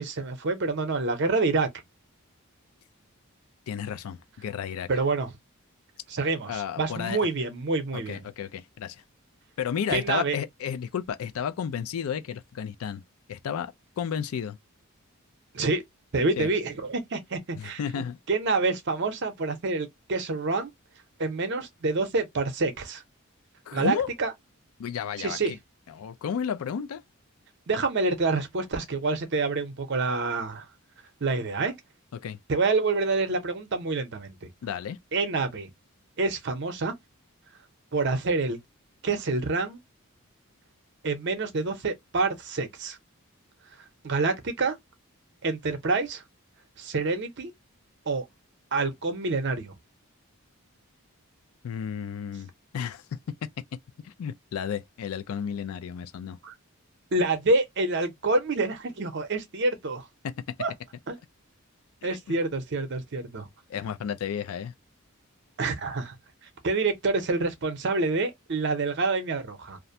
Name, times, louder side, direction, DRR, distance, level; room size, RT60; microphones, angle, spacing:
voice 1, 0.0-1.7 4.9-5.3 6.1-8.2 9.9-10.4 15.5-15.8 16.1-20.7 21.2-23.0 23.7-24.3 25.2-25.6 27.7-30.7 31.2-31.7 32.5-34.5 35.1-35.7 36.2-36.9 37.9-38.6 39.0-39.8 41.0-43.0 44.0-44.8 45.4-46.2 46.8-47.5 48.1-48.2 48.7-49.7 56.4-56.5 57.1-60.0 60.6-60.7 61.1-61.2 62.0-63.5 65.6-66.1 66.6-69.8, right 3 dB, 50° right, 0.6 m, -27 dB
voice 2, 3.7-4.9 6.5-7.2 7.9-9.0 9.6-13.0 13.3-14.6 16.4-16.5 17.5-18.2 23.7-24.1 24.8-25.6 25.9-27.0 32.2-32.4 34.6-35.0 51.6-53.5 54.0-56.4 60.2-60.3 62.3-62.4 63.7-64.7, left 8 dB, 75° left, 0.3 m, -32 dB
2.4 x 2.1 x 2.6 m
head